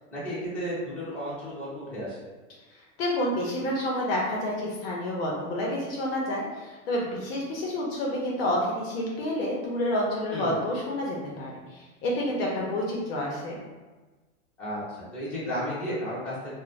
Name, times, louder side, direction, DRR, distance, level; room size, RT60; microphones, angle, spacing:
voice 1, 0.1-2.3 10.3-10.6 14.6-14.8 15.1-16.5, equal, 5° left, -12 dB, 0.7 m, -33 dB
voice 2, 3.0-13.6, left 1 dB, 50° left, -3 dB, 0.6 m, -29 dB
2.4 x 2.1 x 3.0 m, 1.2 s
supercardioid pair, 155°, 40 cm